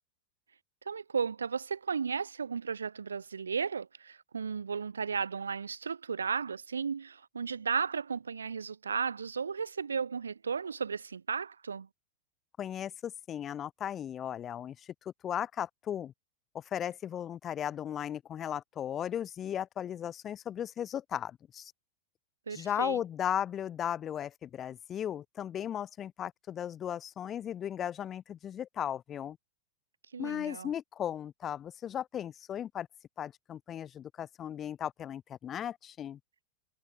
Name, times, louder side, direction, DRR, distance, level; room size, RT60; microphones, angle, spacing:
voice 1, 0.9-11.9 22.5-23.0 30.1-30.7, right 6 dB, 85° right, 0.4 m, -34 dB
voice 2, 12.6-14.9 15.2-16.1 16.5-21.7 22.5-29.4 30.2-32.9 33.2-36.2, left 10 dB, 30° left, 0.4 m, -36 dB
hypercardioid pair, 95°, 0 cm